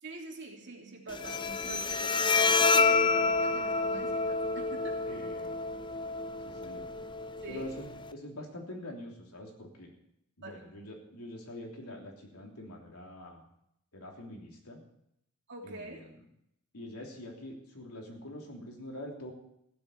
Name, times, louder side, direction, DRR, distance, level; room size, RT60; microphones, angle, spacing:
voice 1, 0.0-5.0 7.4-7.7 10.4-10.6 15.5-16.1, right 2 dB, 55° right, 0 dB, 3.0 m, -45 dB
Bowed string instrument, 1.1-8.1, left 4 dB, 20° left, 0.5 m, -29 dB
voice 2, 5.1-5.6 6.4-6.9 7.5-9.9 10.4-13.4 13.9-14.8 15.6-16.2 16.7-19.3, left 1 dB, 85° left, 1 dB, 3.3 m, -45 dB
15.5 x 8.0 x 8.5 m, 0.78 s
head